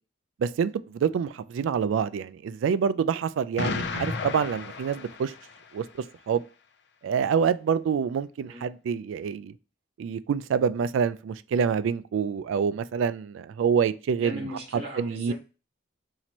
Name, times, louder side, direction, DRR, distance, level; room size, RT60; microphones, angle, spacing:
voice 1, 0.4-5.3 5.7-5.8 6.3-6.4 7.0-9.5 10.0-14.4 15.0-15.3, right 6 dB, 85° right, 0.3 m, -26 dB
Explosion, 3.6-5.8, left 4 dB, 60° left, 0.4 m, -33 dB
voice 2, 14.2-15.3, right 1 dB, 30° right, 1.4 m, -37 dB
3.0 x 2.8 x 4.2 m
head